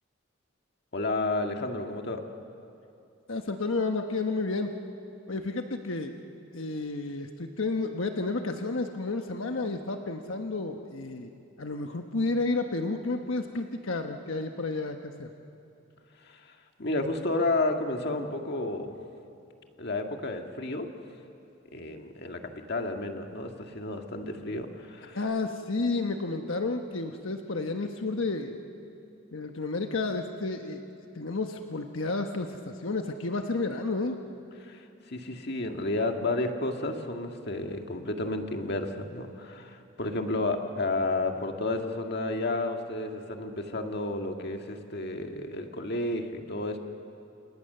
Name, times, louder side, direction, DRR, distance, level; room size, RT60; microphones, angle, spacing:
voice 1, 0.9-2.2 16.3-16.5 16.8-18.9 19.8-20.9 21.7-25.2 34.6-46.8, left 2 dB, 55° left, 4 dB, 1.8 m, -31 dB
voice 2, 3.3-4.7 5.3-6.1 6.5-11.3 11.6-15.3 25.1-28.6 29.3-30.8 31.1-34.2, left 3 dB, 85° left, 4 dB, 1.2 m, -31 dB
29.5 x 27.0 x 6.8 m, 2.7 s
head